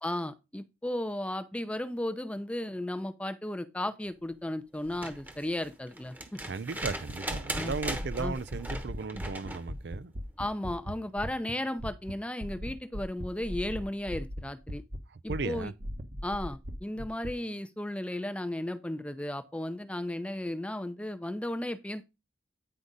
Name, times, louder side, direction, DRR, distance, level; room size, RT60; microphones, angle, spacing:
voice 1, 0.0-6.4 7.5-7.8 8.2-8.3 9.1-9.2 10.4-14.8 15.2-15.7 16.2-22.1, left 1 dB, 5° left, 0.5 m, -35 dB
sound 1, 4.8-9.7 11.3-11.4, right 1 dB, 10° right, 1.0 m, -39 dB
voice 2, 6.4-10.1 15.1-15.7, right 4 dB, 75° right, 0.5 m, -36 dB
sound 2, 6.8-11.5 11.8-12.1 12.4-15.0 15.3-17.3, equal, 45° right, 1.0 m, -38 dB
9.8 x 4.9 x 4.0 m
head